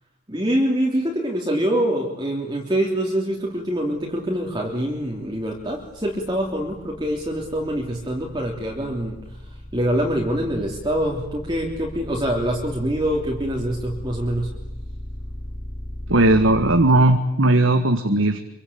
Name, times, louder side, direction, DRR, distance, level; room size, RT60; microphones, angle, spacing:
voice 1, 0.3-9.2 9.7-14.5, equal, 20° right, -1 dB, 3.4 m, -25 dB
sound 1, 3.6-16.9, equal, 60° left, 5.9 m, -37 dB
voice 2, 16.1-18.4, right 2 dB, 70° right, 7 dB, 1.8 m, -17 dB
26.5 x 24.5 x 8.7 m, 0.86 s
head